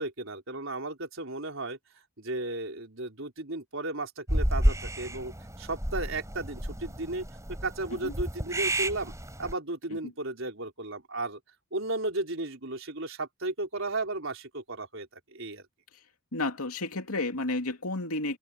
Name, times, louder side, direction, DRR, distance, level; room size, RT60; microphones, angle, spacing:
voice 1, 0.0-1.8 2.2-7.2 7.6-9.1 9.4-11.4 11.7-15.6, right 2 dB, 60° right, 4.6 m, -34 dB
sound 1, 4.3-9.5, right 1 dB, 15° right, 6.3 m, -30 dB
voice 2, 16.3-18.4, left 2 dB, 85° left, 2.6 m, -31 dB
head